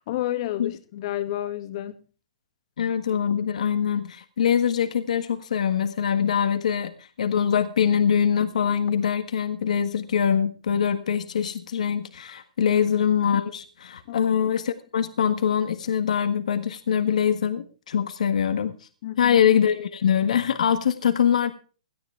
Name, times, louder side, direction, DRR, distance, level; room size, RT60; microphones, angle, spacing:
voice 1, 0.0-2.0 12.7-12.8 14.1-14.3 19.0-19.4, left 13 dB, 50° left, 2.1 m, -31 dB
voice 2, 2.8-18.7 19.2-21.5, left 8 dB, 75° left, 1.6 m, -23 dB
17.5 x 15.0 x 3.4 m
hypercardioid pair, 125°, 4 cm